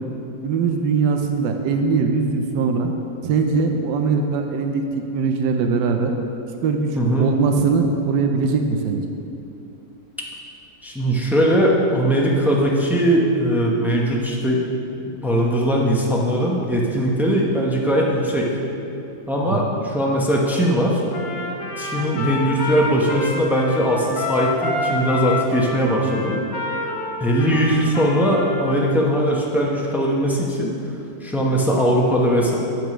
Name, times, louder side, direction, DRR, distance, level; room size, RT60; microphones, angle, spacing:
voice 1, 0.4-2.9 3.2-4.8 5.1-6.1 6.6-9.1 19.4-19.6 22.0-22.3, right 5 dB, 80° right, 5 dB, 1.3 m, -21 dB
voice 2, 7.0-7.3 10.8-18.5 19.3-21.0 21.8-26.4 27.2-30.7 31.2-32.6, equal, ahead, -3 dB, 0.5 m, -20 dB
Trumpet, 21.1-28.9, left 2 dB, 90° left, 1.7 m, -28 dB
9.0 x 5.3 x 6.2 m, 2.7 s
omnidirectional pair, 1.9 m